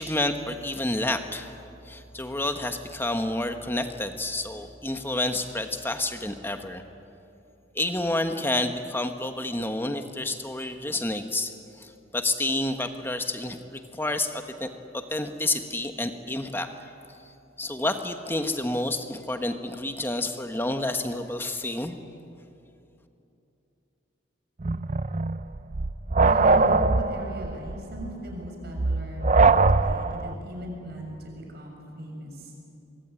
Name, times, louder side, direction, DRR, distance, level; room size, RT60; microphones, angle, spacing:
voice 1, 0.0-1.5 1.8-6.8 7.7-16.7 17.6-22.0, left 2 dB, 10° left, 6 dB, 1.3 m, -29 dB
sound 1, 24.6-30.3, right 3 dB, 35° right, 0.6 m, -22 dB
voice 2, 26.2-32.5, equal, 50° right, 1 dB, 6.6 m, -38 dB
24.5 x 23.5 x 9.8 m, 2.8 s
head